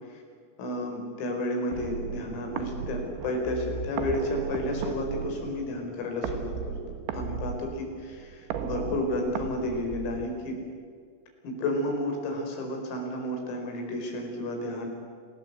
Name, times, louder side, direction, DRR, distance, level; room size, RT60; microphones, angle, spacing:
voice 1, 0.6-6.8 7.1-10.6 11.4-14.9, left 1 dB, 80° left, 2 dB, 7.3 m, -31 dB
sound 1, 1.7-10.7, right 7 dB, 70° right, 3.4 m, -36 dB
27.5 x 18.5 x 8.1 m, 2.1 s
omnidirectional pair, 6.0 m